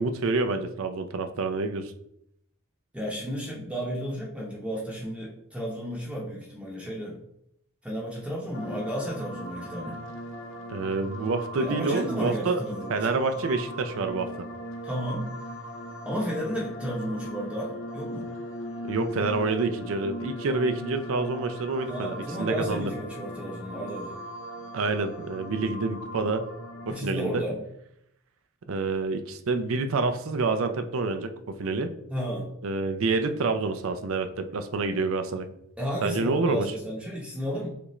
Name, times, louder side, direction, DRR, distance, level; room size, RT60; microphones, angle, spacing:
voice 1, 0.0-1.9 10.7-12.6 12.9-14.3 18.8-22.9 24.7-26.5 26.9-27.4 28.7-31.9 32.6-35.5 36.0-36.7, right 3 dB, 65° right, 8 dB, 0.5 m, -27 dB
voice 2, 2.9-7.2 7.8-10.0 11.6-13.1 14.8-15.3 16.0-18.3 21.8-24.2 26.9-27.6 32.1-32.5 35.8-37.7, equal, 5° right, -5 dB, 0.8 m, -33 dB
sound 1, 8.5-27.0, equal, 60° left, 0.7 m, -39 dB
6.6 x 2.5 x 3.1 m, 0.77 s
head